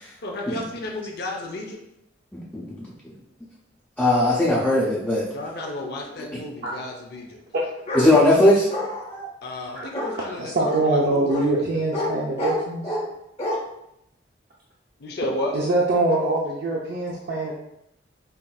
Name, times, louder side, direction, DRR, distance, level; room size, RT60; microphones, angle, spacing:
voice 1, 0.2-1.8 5.3-7.4 9.4-11.6 15.0-15.6, left 1 dB, 60° left, 0 dB, 0.6 m, -32 dB
voice 2, 2.3-2.9 4.0-5.2 7.9-8.7, left 1 dB, 5° left, -8 dB, 0.6 m, -18 dB
Bark, 7.9-8.1 8.7-9.3 9.9-10.1 10.6-10.8 11.3-11.5 11.9-12.1 12.4-13.0 13.4-13.6, left 1 dB, 35° left, 1.1 m, -27 dB
voice 3, 10.3-12.9 15.5-17.5, right 2 dB, 60° right, -3 dB, 0.5 m, -23 dB
5.5 x 2.6 x 2.3 m, 0.81 s
head